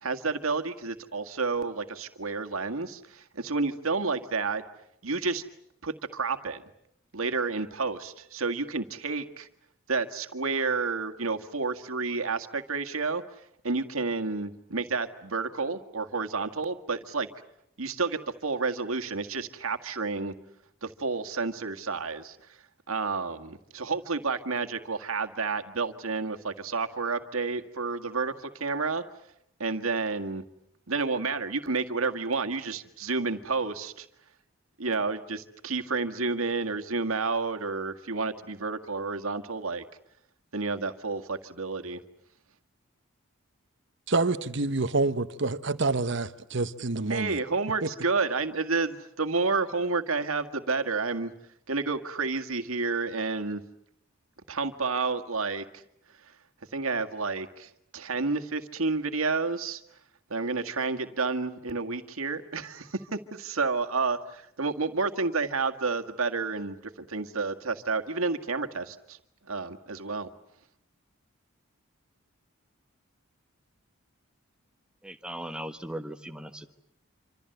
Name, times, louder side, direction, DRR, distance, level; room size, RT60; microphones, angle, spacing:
voice 1, 0.0-4.6 5.0-5.4 5.8-6.6 7.1-9.5 9.9-13.2 13.6-17.3 17.8-20.3 20.8-22.4 22.9-29.0 29.6-30.4 30.9-34.1 34.8-39.8 40.5-42.0 47.1-51.3 51.7-53.6 54.5-55.8 56.7-59.8 60.3-69.2 69.5-70.3, right 4 dB, 80° right, 1.9 m, -30 dB
voice 2, 44.1-47.4 47.8-47.9, right 3 dB, 55° right, 1.0 m, -27 dB
voice 3, 75.0-76.7, right 1 dB, 5° right, 1.3 m, -38 dB
27.0 x 26.5 x 7.9 m
head